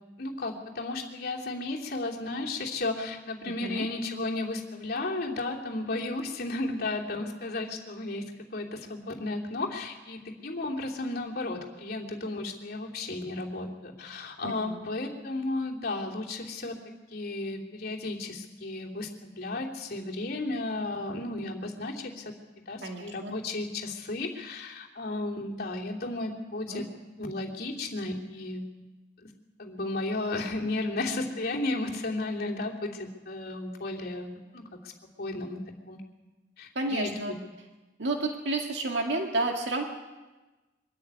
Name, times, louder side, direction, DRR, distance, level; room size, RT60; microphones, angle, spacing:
voice 1, 0.2-16.8 17.1-22.2 22.7-26.8 27.2-28.6 29.2-29.3 29.6-34.9 35.2-35.6 35.9-36.0 36.6-37.1, left 2 dB, 55° left, -1 dB, 3.0 m, -34 dB
voice 2, 3.5-3.9 14.4-14.8 22.8-23.3 26.7-26.9 36.8-37.4 38.0-39.8, right 2 dB, 70° right, 2 dB, 2.0 m, -31 dB
23.5 x 13.5 x 9.6 m, 1.2 s
head